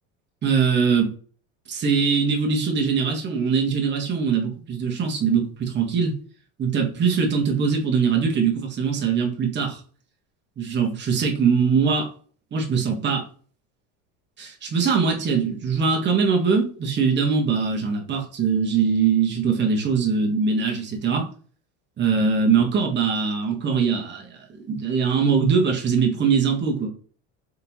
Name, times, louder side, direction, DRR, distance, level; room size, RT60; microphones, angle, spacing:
voice 1, 0.4-1.1 1.7-6.1 6.6-9.8 10.6-12.1 12.5-13.2 14.4-21.2 22.0-24.4 24.6-26.9, right 5 dB, 30° right, 1 dB, 1.2 m, -22 dB
3.6 x 3.6 x 2.9 m, 0.43 s
supercardioid pair, 110°, 35 cm